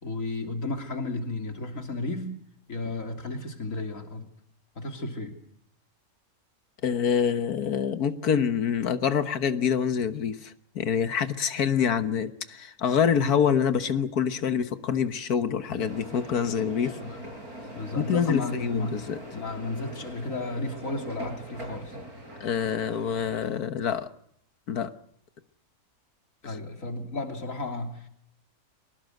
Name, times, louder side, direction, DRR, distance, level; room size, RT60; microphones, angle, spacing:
voice 1, 0.0-2.3 2.7-4.3 4.7-5.3 16.8-17.2 17.7-19.0 19.3-22.0 26.4-28.1, left 2 dB, 60° left, 4 dB, 3.5 m, -33 dB
voice 2, 6.8-16.9 17.9-19.2 22.4-24.1 24.7-24.9, left 7 dB, 85° left, 10 dB, 1.8 m, -26 dB
sound 1, 15.8-23.5, equal, 80° right, 7.7 m, -42 dB
24.0 x 19.5 x 7.9 m, 0.70 s
omnidirectional pair, 1.6 m